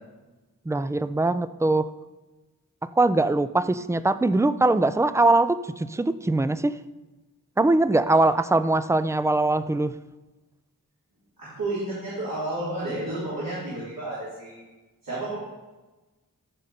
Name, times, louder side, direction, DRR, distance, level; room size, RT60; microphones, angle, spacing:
voice 1, 0.7-1.9 3.0-6.7 7.6-9.9, right 2 dB, 10° right, 14 dB, 0.3 m, -22 dB
voice 2, 11.4-14.6 15.0-15.4, right 2 dB, 80° right, -10 dB, 3.4 m, -31 dB
14.5 x 5.3 x 4.2 m, 1.2 s
wide cardioid pair, 75°, 34 cm